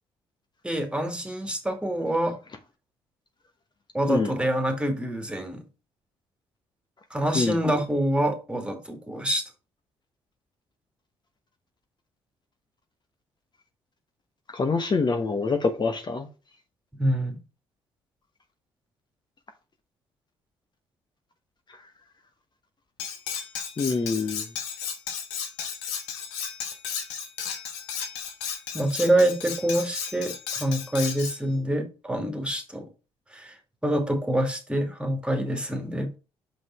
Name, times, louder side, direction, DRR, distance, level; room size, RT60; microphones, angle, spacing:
voice 1, 0.6-2.4 3.9-5.6 7.1-9.4 16.9-17.4 28.7-32.8 33.3-33.5 33.8-36.2, right 1 dB, 10° right, 2.5 m, -26 dB
voice 2, 14.5-16.3 23.8-24.4, left 4 dB, 40° left, 1.2 m, -25 dB
Cutlery silverware, 23.0-31.4, left 7 dB, 85° left, 1.2 m, -34 dB
5.8 x 5.2 x 4.9 m
hypercardioid pair, 55°, 12 cm